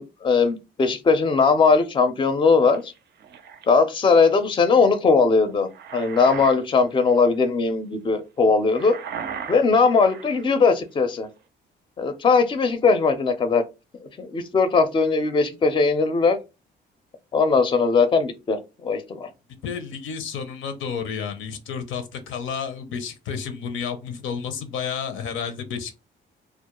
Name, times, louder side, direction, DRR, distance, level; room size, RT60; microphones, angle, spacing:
voice 1, 0.0-2.9 3.7-9.0 9.5-11.3 12.0-13.6 14.2-16.4 17.3-19.3, left 4 dB, 25° left, 0.4 m, -19 dB
sound 1, 2.7-3.7 5.4-6.6 6.9-7.2 8.7-10.5, right 7 dB, 60° right, 0.4 m, -37 dB
voice 2, 19.5-25.9, left 6 dB, 80° left, 0.5 m, -31 dB
2.3 x 2.0 x 2.9 m
cardioid pair, 90°, 20 cm